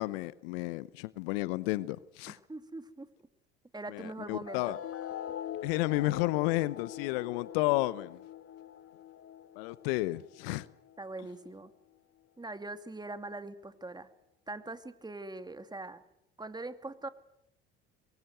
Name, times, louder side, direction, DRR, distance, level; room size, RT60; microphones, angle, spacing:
voice 1, 0.0-2.4 3.9-4.8 5.6-8.2 9.6-10.7, left 19 dB, 70° left, 0.9 m, -32 dB
voice 2, 2.3-3.1 3.7-4.8 5.6-5.7 11.0-11.7 12.4-14.1 14.5-16.0 16.4-17.1, right 2 dB, 15° right, 2.5 m, -42 dB
sound 1, 4.5-11.4, left 10 dB, 50° left, 1.4 m, -43 dB
26.0 x 22.0 x 8.1 m
hypercardioid pair, 60°, 30 cm